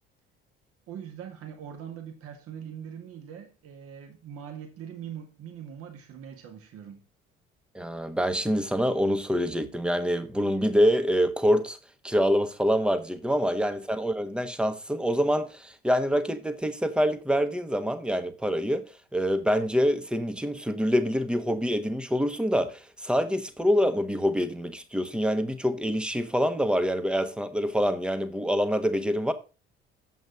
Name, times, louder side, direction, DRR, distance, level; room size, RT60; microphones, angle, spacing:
voice 1, 0.9-7.1, right 8 dB, 50° right, 1.7 m, -42 dB
voice 2, 7.7-11.8 12.0-18.8 19.1-29.3, equal, 5° right, 1.2 m, -26 dB
9.1 x 7.9 x 3.8 m
figure-of-eight pair, 55°, 30 cm